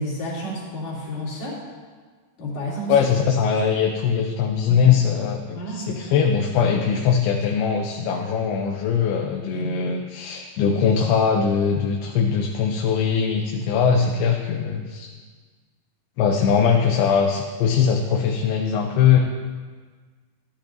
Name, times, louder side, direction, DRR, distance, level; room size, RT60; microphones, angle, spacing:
voice 1, 0.0-1.6 2.4-3.1 4.7-4.8 5.5-6.2 9.4-9.9, equal, 45° left, -7 dB, 3.8 m, -31 dB
voice 2, 2.9-15.1 16.2-19.2, left 7 dB, 80° left, 2 dB, 2.6 m, -21 dB
13.0 x 12.0 x 2.6 m, 1.5 s
omnidirectional pair, 4.7 m